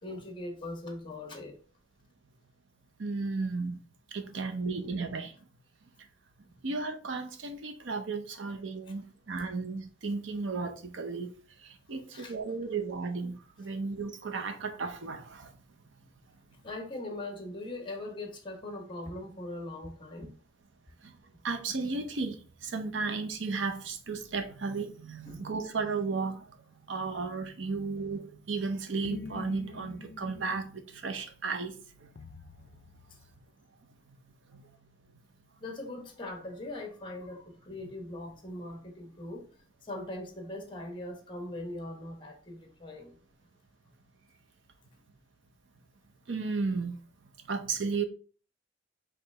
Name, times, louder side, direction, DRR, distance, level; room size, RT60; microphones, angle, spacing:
voice 1, 0.0-1.6 6.5-6.6 11.9-12.3 16.6-20.3 25.3-25.5 33.0-33.2 35.6-39.5 39.8-43.2, left 1 dB, 25° left, 1.1 m, -41 dB
voice 2, 3.0-3.8 4.1-5.3 6.6-11.3 11.6-15.5 21.0-21.1 21.4-26.6 26.9-32.1 34.1-34.2 34.5-34.7 46.3-47.0 47.5-48.0, right 4 dB, 80° right, 0.6 m, -34 dB
sound 1, 29.0-30.7 32.2-33.4, left 3 dB, 55° left, 0.4 m, -45 dB
4.8 x 3.2 x 3.3 m
head